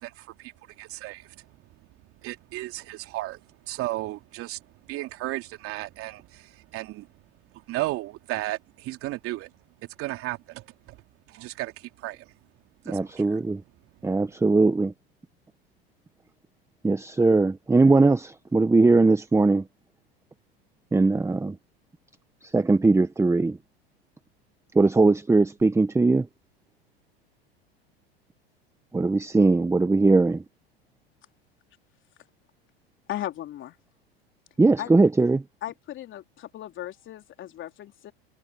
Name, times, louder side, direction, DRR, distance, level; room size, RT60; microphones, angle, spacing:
voice 1, 0.0-1.4 2.2-3.4 3.7-7.1 7.7-9.5 10.0-11.0 11.3-12.3 12.8-13.4, right 17 dB, 45° right, 2.9 m, -34 dB
voice 2, 12.9-13.6 14.0-14.9 16.8-19.6 20.9-21.5 22.4-23.6 24.7-26.3 28.9-30.4 34.6-35.4, right 3 dB, 10° right, 1.2 m, -20 dB
voice 3, 33.1-33.8 34.8-34.9 35.6-38.1, left 12 dB, 40° left, 3.6 m, -36 dB
hypercardioid pair, 85°, 31 cm